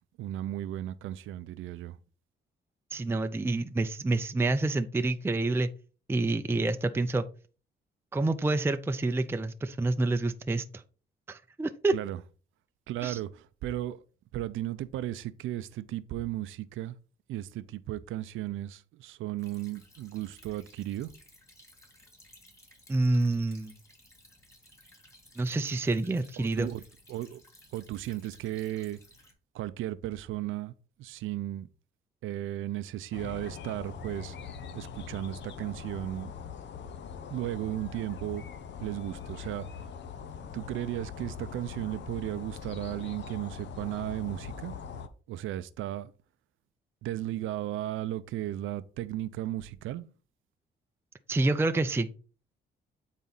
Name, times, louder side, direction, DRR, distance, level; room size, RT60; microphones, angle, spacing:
voice 1, 0.2-2.0 11.9-12.2 12.9-14.0 14.3-16.9 17.3-21.1 26.4-26.8 27.1-27.4 27.7-29.0 29.5-30.7 31.0-31.7 32.2-34.4 34.7-36.3 37.3-38.4 38.8-39.7 40.5-44.7 45.3-46.1 47.0-50.0, right 14 dB, 85° right, 0.6 m, -35 dB
voice 2, 2.9-5.7 6.1-7.3 8.1-10.8 11.3-12.0 13.0-13.2 22.9-23.7 25.4-26.7 51.3-52.1, right 2 dB, 10° right, 0.5 m, -28 dB
Stream / Trickle dribble, 19.4-29.3, left 1 dB, 15° left, 2.9 m, -58 dB
sound 1, 33.1-45.1, left 6 dB, 65° left, 0.9 m, -42 dB
8.8 x 4.1 x 4.0 m
cardioid pair, 90°, 20 cm